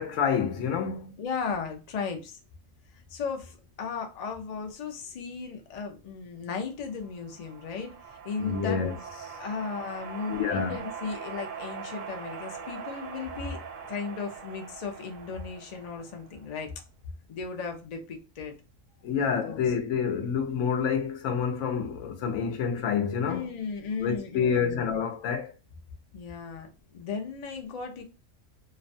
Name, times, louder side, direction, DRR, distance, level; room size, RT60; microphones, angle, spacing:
voice 1, 0.0-1.1 8.4-9.0 10.3-10.8 19.0-23.5 24.0-25.5, left 6 dB, 80° left, 0.9 m, -28 dB
voice 2, 1.2-2.4 3.1-8.8 9.4-13.6 13.9-16.7 17.3-18.6 19.4-19.6 23.3-24.9 26.1-28.0, left 5 dB, 55° left, 0.4 m, -36 dB
sound 1, 7.0-16.6, right 6 dB, 85° right, 1.0 m, -42 dB
2.4 x 2.1 x 2.6 m
omnidirectional pair, 1.3 m